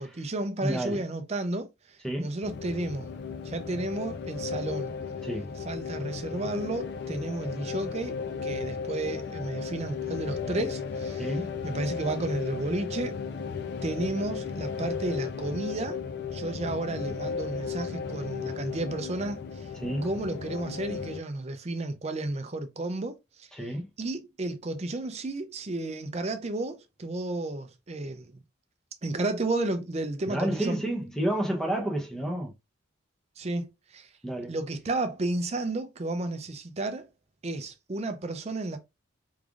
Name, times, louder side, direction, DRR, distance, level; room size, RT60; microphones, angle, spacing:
voice 1, 0.0-3.1 3.4-5.0 5.7-11.3 11.6-13.2 13.8-16.0 16.3-19.7 20.0-23.5 24.0-28.4 29.0-30.8 33.4-34.1 34.5-37.1 37.4-38.8, right 2 dB, 30° right, 0.5 m, -32 dB
voice 2, 0.6-1.0 2.0-2.3 5.2-5.5 11.2-11.5 19.8-20.1 23.5-23.9 30.3-32.5 34.2-34.5, right 1 dB, 5° left, 0.8 m, -30 dB
sound 1, 2.4-21.2, left 6 dB, 55° left, 0.4 m, -35 dB
3.6 x 3.3 x 2.4 m
head